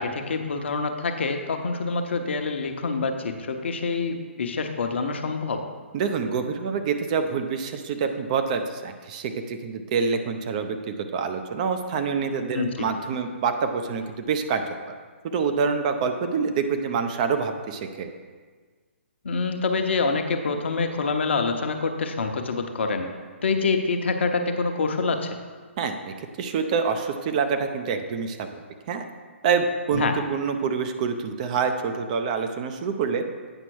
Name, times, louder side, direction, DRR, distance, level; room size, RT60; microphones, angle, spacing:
voice 1, 0.0-5.6 12.5-12.7 19.2-23.1 23.4-25.4 29.9-30.1, left 4 dB, 60° left, 5 dB, 0.9 m, -26 dB
voice 2, 5.9-14.6 15.2-18.1 25.8-28.6 28.9-29.0 29.4-33.2, right 5 dB, 35° right, 6 dB, 0.7 m, -26 dB
8.9 x 6.0 x 4.7 m, 1.5 s
figure-of-eight pair, 130°, 7 cm